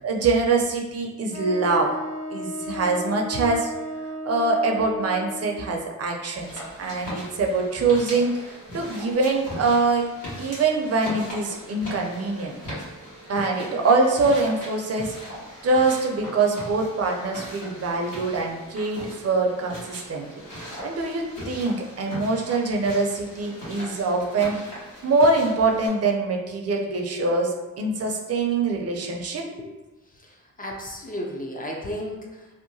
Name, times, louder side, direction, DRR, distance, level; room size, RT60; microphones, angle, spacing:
voice 1, 0.0-1.9 2.3-3.7 4.2-6.5 6.8-10.1 10.4-12.6 13.3-15.2 15.6-20.3 20.8-24.6 25.0-29.4, right 3 dB, 50° right, 1 dB, 0.5 m, -24 dB
Wind instrument woodwind instrument, 1.3-5.7, left 2 dB, 45° left, 1.3 m, -34 dB
sound 1, 6.4-25.9, equal, 70° left, 1.4 m, -39 dB
voice 2, 30.1-32.5, equal, 25° left, 0 dB, 0.4 m, -34 dB
2.7 x 2.1 x 2.6 m, 1.1 s
cardioid pair, 85°, 33 cm